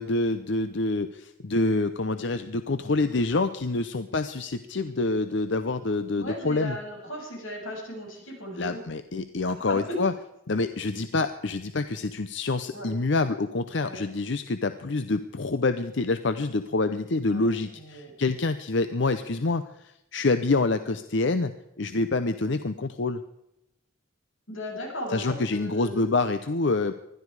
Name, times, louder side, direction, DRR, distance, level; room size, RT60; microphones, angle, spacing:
voice 1, 0.0-6.8 8.6-10.1 10.5-19.6 20.1-21.5 21.8-23.2 25.1-26.9, left 3 dB, 60° left, 11 dB, 0.7 m, -26 dB
voice 2, 6.2-8.8 9.5-10.0 12.7-12.9 13.8-14.0 17.3-18.2 24.5-26.2, equal, 90° left, 0 dB, 7.0 m, -37 dB
20.5 x 13.0 x 4.8 m, 0.85 s
head